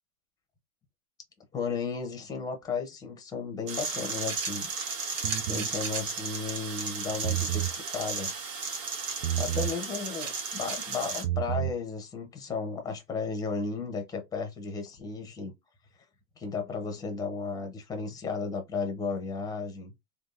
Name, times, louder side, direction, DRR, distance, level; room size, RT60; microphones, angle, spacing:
voice 1, 1.5-4.7 5.0-8.3 9.4-15.5 16.4-19.9, left 4 dB, 10° left, 0.6 m, -34 dB
sound 1, 3.7-11.2, right 4 dB, 60° right, 1.5 m, -34 dB
sound 2, 5.2-5.7 7.1-7.8 9.2-9.8 11.1-11.8, right 13 dB, 90° right, 0.5 m, -30 dB
3.4 x 2.4 x 2.4 m
supercardioid pair, 140°, 45 cm